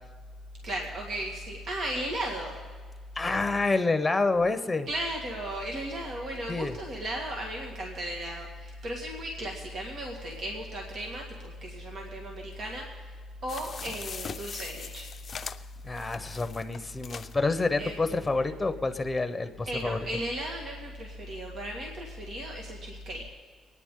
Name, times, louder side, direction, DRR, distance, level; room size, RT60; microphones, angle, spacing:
voice 1, 0.6-2.6 4.9-13.1 13.4-15.1 17.8-18.5 19.7-23.3, right 1 dB, 55° right, 0 dB, 1.9 m, -36 dB
voice 2, 3.1-4.9 6.5-6.8 15.8-20.0, left 3 dB, 15° left, 9 dB, 0.9 m, -28 dB
sound 1, 13.5-17.4 17.9-18.0 18.2-18.3, left 6 dB, 45° left, 0.5 m, -41 dB
24.0 x 9.7 x 3.8 m, 1.5 s
cardioid pair, 90°, 0 cm